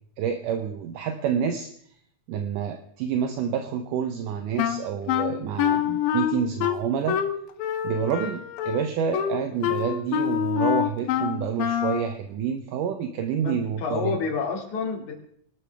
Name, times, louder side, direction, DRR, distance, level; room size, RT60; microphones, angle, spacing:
voice 1, 0.2-1.7 2.3-7.2 7.8-14.2, right 7 dB, 75° right, 6 dB, 2.4 m, -28 dB
Wind instrument woodwind instrument, 4.6-12.1, left 9 dB, 85° left, 2.7 m, -26 dB
voice 2, 13.4-15.1, left 5 dB, 60° left, 0 dB, 3.9 m, -29 dB
25.0 x 12.5 x 3.5 m, 0.65 s
omnidirectional pair, 3.9 m